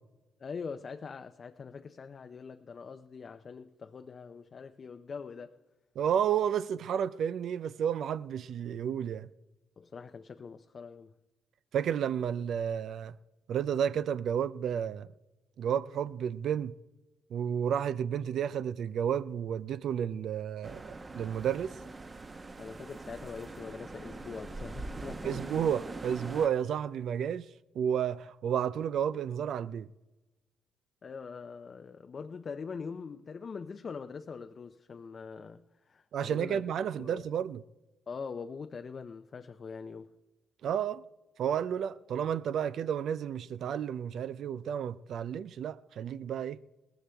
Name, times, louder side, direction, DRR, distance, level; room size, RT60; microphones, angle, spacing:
voice 1, 0.4-5.6 9.8-11.1 22.6-25.5 31.0-36.6 37.0-37.2 38.1-40.1, left 5 dB, 40° left, 0.5 m, -43 dB
voice 2, 6.0-9.3 11.7-13.1 13.5-15.1 15.6-16.7 17.3-21.8 25.2-27.5 27.8-29.9 36.1-37.6 40.6-41.0 41.4-46.6, right 8 dB, 65° right, 0.3 m, -31 dB
sound 1, 20.6-26.5, right 3 dB, 25° right, 0.9 m, -43 dB
18.5 x 14.5 x 3.4 m
cardioid pair, 100°, 0 cm